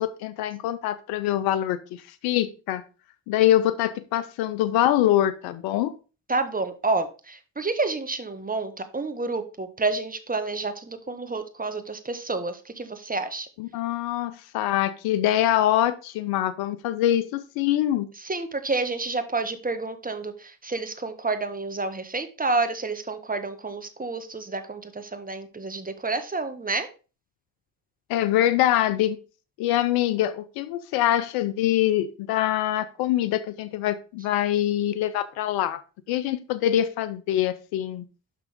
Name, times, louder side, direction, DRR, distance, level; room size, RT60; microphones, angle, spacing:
voice 1, 0.0-2.8 3.3-5.9 13.6-18.1 28.1-29.2 29.6-35.8 36.1-38.0, left 12 dB, 90° left, 13 dB, 0.6 m, -24 dB
voice 2, 6.3-13.5 18.2-26.9, right 3 dB, 25° right, 9 dB, 1.5 m, -29 dB
6.4 x 5.9 x 5.1 m, 0.34 s
supercardioid pair, 50°, 36 cm